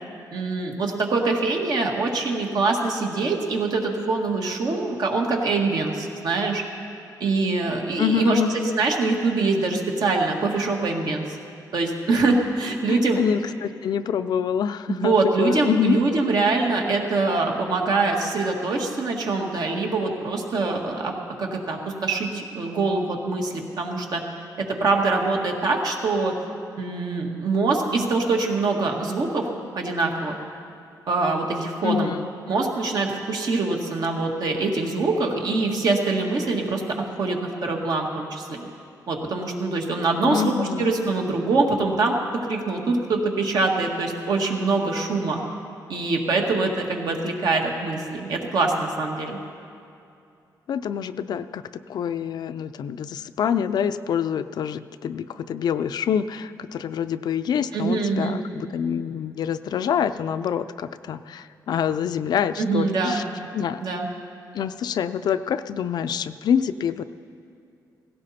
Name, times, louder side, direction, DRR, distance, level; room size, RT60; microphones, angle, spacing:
voice 1, 0.3-6.6 7.2-11.4 11.7-13.2 14.9-21.1 21.4-24.2 24.6-26.4 26.8-29.5 29.7-30.3 31.1-32.1 32.5-36.8 37.2-38.7 39.1-42.2 42.5-45.4 45.9-49.4 57.7-58.4 62.6-63.2 63.8-64.1, right 3 dB, 65° right, 1 dB, 1.8 m, -24 dB
voice 2, 8.0-8.5 12.9-16.0 31.8-32.3 40.2-40.9 50.7-51.6 51.9-63.2 63.5-63.8 64.5-67.0, left 8 dB, 70° left, 12 dB, 0.5 m, -26 dB
17.0 x 16.5 x 4.3 m, 2.5 s
cardioid pair, 115°, 7 cm